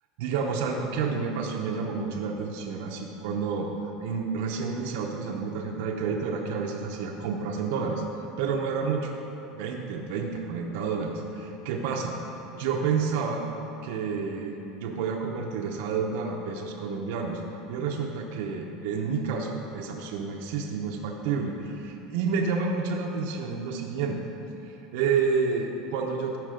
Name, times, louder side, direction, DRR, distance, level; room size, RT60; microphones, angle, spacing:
voice 1, 0.2-8.0 8.4-9.1 9.5-12.2 12.6-13.4 13.8-17.4 17.7-24.2 24.6-26.4, right 5 dB, 70° right, 0 dB, 0.9 m, -29 dB
13.0 x 5.1 x 5.1 m, 3.0 s
supercardioid pair, 140°, 0 cm